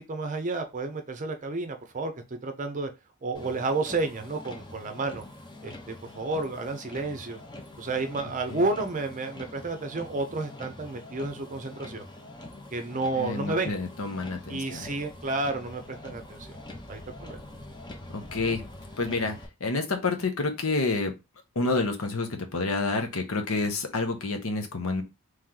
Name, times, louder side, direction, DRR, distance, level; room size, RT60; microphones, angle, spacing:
voice 1, 0.1-2.9 3.2-5.2 5.6-7.4 7.8-12.1 12.7-13.7 14.5-16.6 16.9-17.4, right 3 dB, 35° right, 7 dB, 0.6 m, -31 dB
Motor vehicle (road), 3.3-19.5, left 1 dB, 20° left, 0.7 m, -44 dB
voice 2, 13.2-14.9 18.1-18.6 19.0-21.1 21.5-25.0, left 3 dB, 65° left, 6 dB, 0.9 m, -29 dB
3.2 x 3.0 x 3.7 m, 0.25 s
head